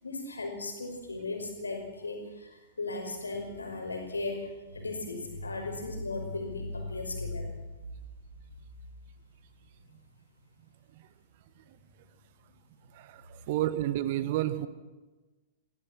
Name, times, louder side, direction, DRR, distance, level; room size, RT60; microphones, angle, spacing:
voice 1, 0.0-7.5, left 3 dB, 75° left, 3 dB, 5.2 m, -36 dB
voice 2, 12.9-14.7, right 14 dB, 45° right, 14 dB, 1.4 m, -30 dB
25.0 x 17.0 x 6.2 m, 1.2 s
figure-of-eight pair, 100°, 0 cm